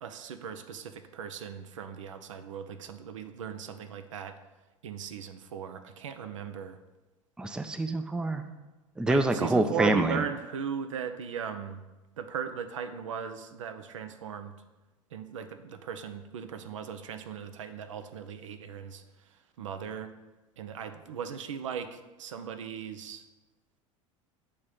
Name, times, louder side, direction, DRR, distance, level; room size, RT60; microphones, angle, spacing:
voice 1, 0.0-4.4 4.8-6.8 9.1-11.8 12.2-14.5 15.1-19.0 19.6-20.1 20.6-23.2, right 7 dB, 65° right, 9 dB, 0.5 m, -38 dB
voice 2, 7.4-8.4 9.0-10.2, right 2 dB, 5° right, 8 dB, 0.4 m, -26 dB
6.6 x 3.5 x 5.7 m, 1.1 s
figure-of-eight pair, 75°, 17 cm